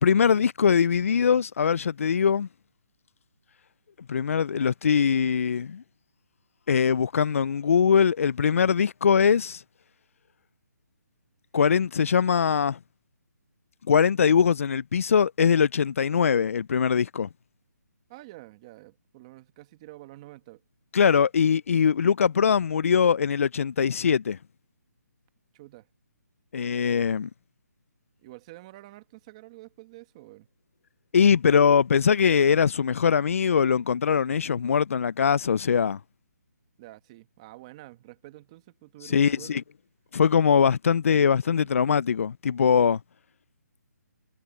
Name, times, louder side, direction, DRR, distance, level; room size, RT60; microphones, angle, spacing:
voice 1, 0.0-2.5 4.1-5.8 6.7-9.6 11.5-12.8 13.9-17.3 20.9-24.4 26.5-27.3 31.1-36.0 39.0-39.6 40.1-43.0, left 7 dB, 50° left, 0.4 m, -22 dB
voice 2, 18.1-20.6 25.5-25.9 28.2-30.5 36.8-39.6 41.6-41.7, right 18 dB, 20° right, 1.3 m, -48 dB
hypercardioid pair, 170°, 10 cm